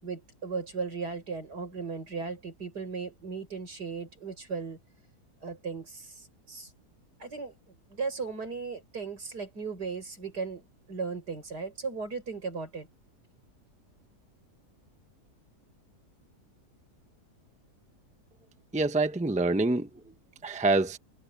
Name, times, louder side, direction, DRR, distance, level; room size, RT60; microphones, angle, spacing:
voice 1, 0.0-4.8 5.4-6.7 7.2-7.5 7.9-10.6 10.9-12.9, right 5 dB, 80° right, 6.0 m, -36 dB
voice 2, 18.7-20.1 20.4-21.0, right 2 dB, 5° right, 0.8 m, -26 dB
omnidirectional pair, 1.7 m